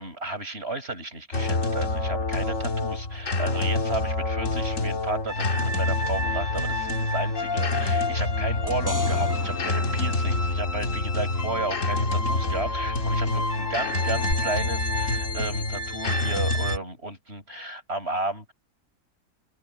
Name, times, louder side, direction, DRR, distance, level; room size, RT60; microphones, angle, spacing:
voice 1, 0.0-18.5, right 2 dB, 40° right, 7.4 m, -33 dB
sound 1, 1.3-16.8, left 2 dB, 55° left, 2.5 m, -26 dB
sound 2, 8.7-11.2 14.3-14.4, equal, 10° left, 7.7 m, -36 dB
omnidirectional pair, 1.6 m